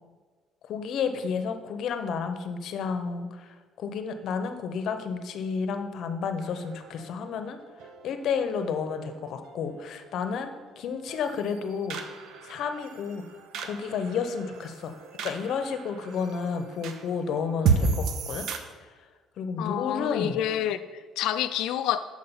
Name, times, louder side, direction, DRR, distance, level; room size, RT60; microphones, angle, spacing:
voice 1, 0.6-7.6 8.0-12.0 12.4-13.2 13.6-14.9 15.2-18.5 19.4-20.4, left 6 dB, 60° left, 8 dB, 0.8 m, -31 dB
sound 1, 6.4-18.6, right 5 dB, 70° right, 0.8 m, -34 dB
voice 2, 19.6-22.0, left 11 dB, 80° left, 11 dB, 0.3 m, -28 dB
6.4 x 5.5 x 7.0 m, 1.4 s
cardioid pair, 135°, 0 cm